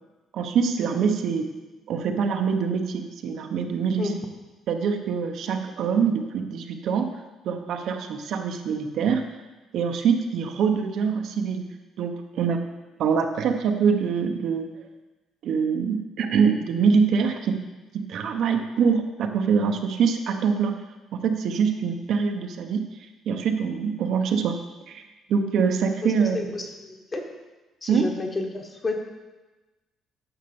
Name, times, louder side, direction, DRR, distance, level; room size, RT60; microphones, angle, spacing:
voice 1, 0.3-1.5 1.9-4.1 4.7-7.1 7.4-9.3 9.7-11.6 12.0-12.6 13.0-14.7 15.4-17.6 17.9-20.8 21.1-22.9 23.3-24.6 24.9-25.0 25.3-26.4 27.9-28.1, right 6 dB, 55° right, 5 dB, 1.0 m, -24 dB
voice 2, 26.3-27.2 27.8-29.0, left 3 dB, 20° left, 3 dB, 1.3 m, -30 dB
10.0 x 6.7 x 7.0 m, 1.1 s
cardioid pair, 165°, 0 cm